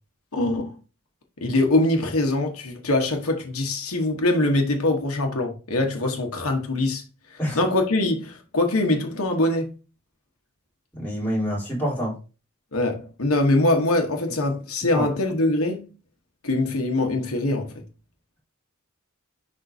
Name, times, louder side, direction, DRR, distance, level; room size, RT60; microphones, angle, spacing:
voice 1, 0.3-0.8 1.4-7.0 7.3-9.7 12.7-15.8 16.4-17.8, left 2 dB, 80° left, 1.2 m, -23 dB
voice 2, 11.0-12.1 14.9-15.1, equal, 10° left, 3.7 m, -26 dB
10.5 x 3.7 x 2.7 m
head